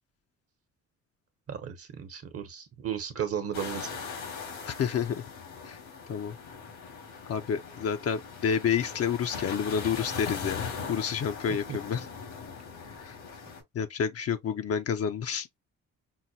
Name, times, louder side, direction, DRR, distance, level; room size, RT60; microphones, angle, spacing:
voice 1, 1.5-3.9 11.7-11.8, right 8 dB, 50° right, 1.0 m, -34 dB
sound 1, 3.5-13.6, left 5 dB, 85° left, 2.6 m, -40 dB
voice 2, 4.6-5.2 5.6-5.8 6.1-6.3 7.3-12.0 12.8-13.2 13.7-15.5, left 7 dB, 55° left, 0.6 m, -29 dB
5.7 x 2.2 x 2.7 m
cardioid pair, 90°, 30 cm